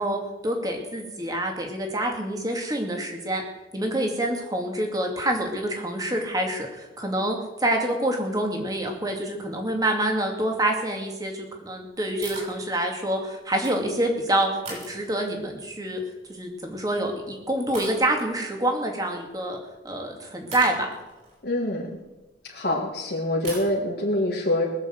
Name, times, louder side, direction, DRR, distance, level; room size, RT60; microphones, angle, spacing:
voice 1, 0.0-3.4 3.7-16.0 16.3-19.6 19.8-20.8, right 1 dB, 20° right, 2 dB, 2.5 m, -27 dB
sound 1, 12.2-12.6 13.4-14.0 14.6-15.5 16.8-17.1 17.7-18.3 19.9-20.0 20.5-22.6 23.4-23.7, right 2 dB, 40° right, 6.4 m, -40 dB
voice 2, 21.4-22.0 22.4-24.7, left 1 dB, 60° left, -1 dB, 1.9 m, -25 dB
20.5 x 7.3 x 7.7 m, 1.1 s
head